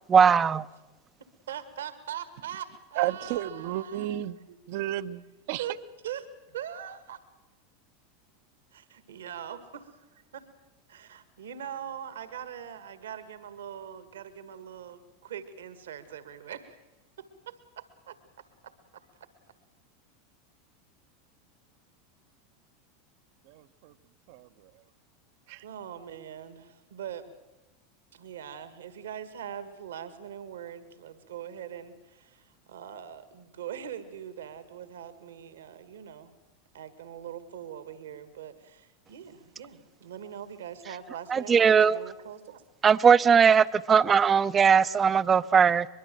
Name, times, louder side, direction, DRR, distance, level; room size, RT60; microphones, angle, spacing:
voice 1, 0.1-0.6 41.3-42.0 42.8-45.9, right 6 dB, 25° right, 0.7 m, -19 dB
voice 2, 1.5-4.1 4.5-4.6 5.6-7.2 8.7-10.5 10.9-16.8 17.2-19.3 25.6-27.3 28.1-36.3 36.7-42.6, right 9 dB, 75° right, 1.8 m, -42 dB
voice 3, 3.0-4.4 4.7-5.6 23.5-23.9 24.3-24.5 25.5-25.6, right 14 dB, 60° right, 1.0 m, -32 dB
23.0 x 22.5 x 7.7 m
hypercardioid pair, 85°, 0 cm